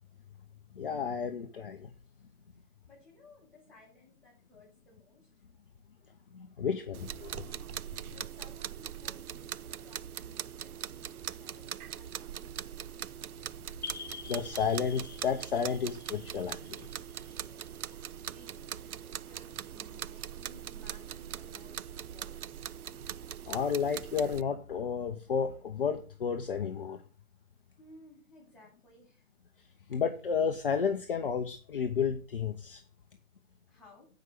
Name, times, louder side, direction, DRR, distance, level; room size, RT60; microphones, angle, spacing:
voice 1, 0.7-1.9 6.3-7.7 14.3-16.9 23.5-27.0 29.9-32.8, left 6 dB, 40° left, 6 dB, 0.8 m, -32 dB
voice 2, 2.9-5.3 8.1-12.9 17.3-22.6 27.8-29.3 33.7-34.1, left 1 dB, ahead, -10 dB, 6.7 m, -59 dB
sound 1, 6.9-24.4, right 10 dB, 80° right, 0.5 m, -41 dB
sound 2, 13.8-18.3, left 6 dB, 80° left, 1.0 m, -47 dB
9.3 x 5.2 x 6.7 m, 0.37 s
figure-of-eight pair, 145°, 44 cm